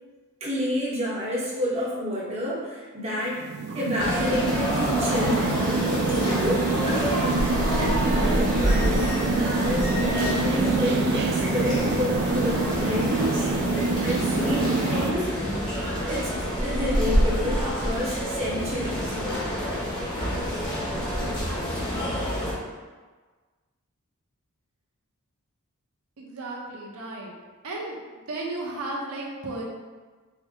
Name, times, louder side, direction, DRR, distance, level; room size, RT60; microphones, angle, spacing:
voice 1, 0.4-3.4 3.7-5.6 6.4-13.5 14.0-15.3 16.0-16.3 16.6-19.2, equal, 30° right, -6 dB, 0.9 m, -29 dB
sound 1, 3.3-15.1, right 4 dB, 50° right, 0.3 m, -27 dB
sound 2, 4.0-22.5, equal, 20° left, 0.9 m, -27 dB
voice 2, 26.2-27.3 27.6-29.6, right 2 dB, 75° right, -2 dB, 0.8 m, -34 dB
4.6 x 2.1 x 3.6 m, 1.4 s
head